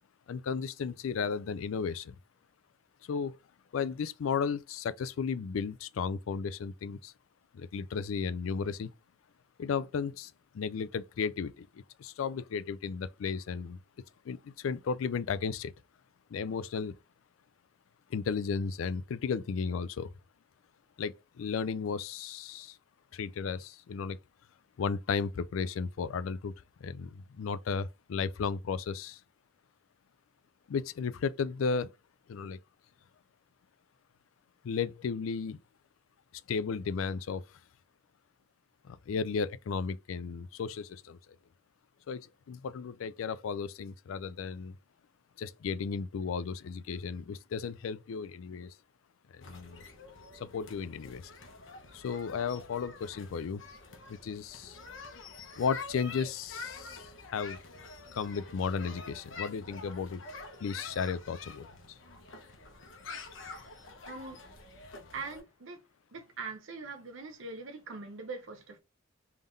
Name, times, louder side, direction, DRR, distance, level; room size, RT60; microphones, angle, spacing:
voice 1, 0.3-2.2 3.1-3.3 3.7-7.1 7.5-8.9 9.6-13.8 14.3-15.7 16.3-17.0 18.1-20.1 21.0-22.8 23.1-24.2 24.8-26.5 26.8-29.2 30.7-31.9 32.3-32.6 34.6-35.6 36.5-37.4 38.8-41.2 42.1-44.7 45.4-48.7 49.3-49.8 50.3-51.3 51.9-53.6 54.1-54.8 55.6-57.6 58.1-60.2 60.6-61.7, left 5 dB, 85° left, 0.4 m, -34 dB
sound 1, 49.4-65.4, left 4 dB, 65° left, 1.0 m, -47 dB
voice 2, 64.0-64.4 65.1-65.8 66.1-68.8, right 4 dB, 70° right, 0.7 m, -42 dB
3.6 x 3.4 x 2.6 m
head